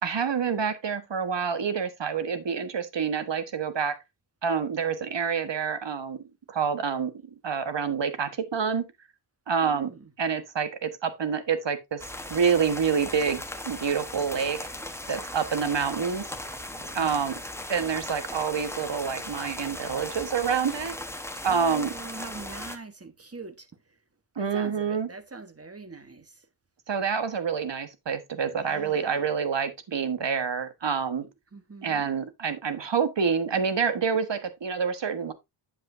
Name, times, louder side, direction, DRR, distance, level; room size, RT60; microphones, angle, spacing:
voice 1, 0.0-4.0 4.4-7.1 7.4-8.9 9.5-9.9 10.2-12.0 12.3-14.6 15.1-16.2 16.9-17.4 17.7-21.0 21.4-21.9 24.4-25.1 26.9-31.2 31.8-35.3, right 6 dB, 65° right, 1.5 m, -27 dB
voice 2, 9.6-10.1 16.7-17.4 21.4-23.7 24.4-26.3 28.5-29.2 31.2-32.1, right 3 dB, 30° right, 1.4 m, -43 dB
sound 1, 12.0-22.8, left 1 dB, 5° left, 1.2 m, -38 dB
8.7 x 7.7 x 2.7 m
wide cardioid pair, 70°, 47 cm